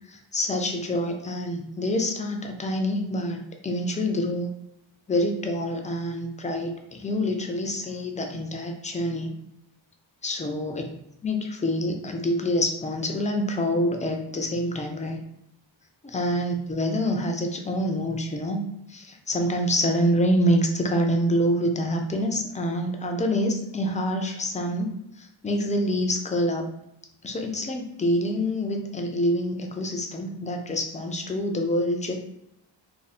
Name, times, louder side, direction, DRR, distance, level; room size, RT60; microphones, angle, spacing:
voice 1, 0.1-4.5 5.1-9.3 10.2-10.9 11.2-15.2 16.0-24.9 25.2-26.7 27.2-32.2, equal, 15° left, 3 dB, 0.3 m, -26 dB
2.7 x 2.6 x 4.1 m, 0.81 s
wide cardioid pair, 145°, 46 cm